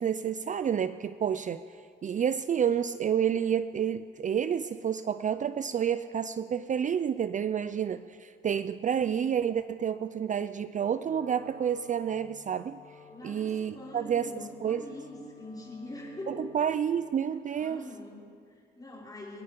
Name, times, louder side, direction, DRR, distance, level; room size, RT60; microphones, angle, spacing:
voice 1, 0.0-1.6 2.0-12.8 13.2-14.8 16.3-17.8, right 8 dB, 40° right, 12 dB, 0.5 m, -29 dB
Wind instrument woodwind instrument, 11.0-17.0, left 5 dB, 40° left, 3.5 m, -54 dB
voice 2, 13.1-16.4 17.5-19.4, left 1 dB, 20° left, -4 dB, 5.5 m, -44 dB
26.5 x 10.0 x 5.3 m, 2.3 s
cardioid pair, 90°, 20 cm